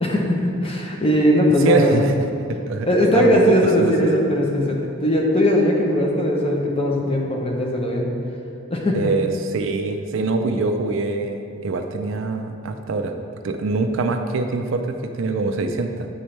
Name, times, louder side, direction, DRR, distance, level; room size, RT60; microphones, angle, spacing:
voice 1, 0.0-2.0 2.8-8.1 8.7-9.1, left 1 dB, 25° left, -1 dB, 0.7 m, -19 dB
voice 2, 1.6-2.1 2.5-4.2 8.9-13.1 13.4-16.1, right 3 dB, 65° right, 6 dB, 0.4 m, -23 dB
8.9 x 4.3 x 3.3 m, 2.6 s
head